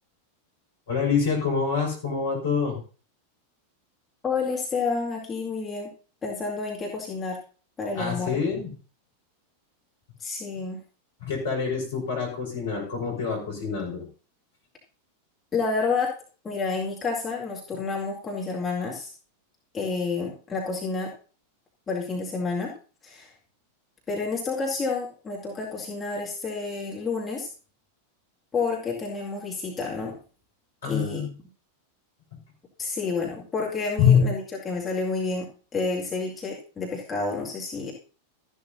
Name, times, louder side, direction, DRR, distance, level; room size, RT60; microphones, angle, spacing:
voice 1, 0.9-2.8 7.9-8.7 11.2-14.0 30.8-31.3 34.0-34.2, left 6 dB, 65° left, 1 dB, 5.0 m, -25 dB
voice 2, 4.2-5.9 6.2-7.4 7.8-8.3 10.2-10.8 15.5-16.1 16.4-19.1 19.7-21.1 21.9-22.7 23.0-23.3 24.1-27.5 28.5-30.1 30.8-31.3 32.8-35.5 35.7-37.9, left 4 dB, 20° left, -3 dB, 2.3 m, -29 dB
13.5 x 11.0 x 2.7 m, 0.38 s
figure-of-eight pair, 90°, 0 cm